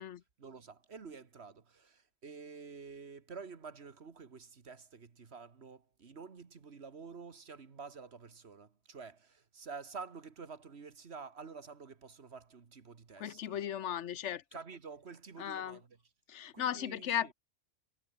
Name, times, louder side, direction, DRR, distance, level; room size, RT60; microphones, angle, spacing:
voice 1, 0.4-13.6 14.5-15.9 16.5-17.3, right 5 dB, 60° right, 1.8 m, -49 dB
voice 2, 13.2-14.4 15.4-15.8 16.3-17.3, left 10 dB, 70° left, 1.1 m, -36 dB
omnidirectional pair, 1.3 m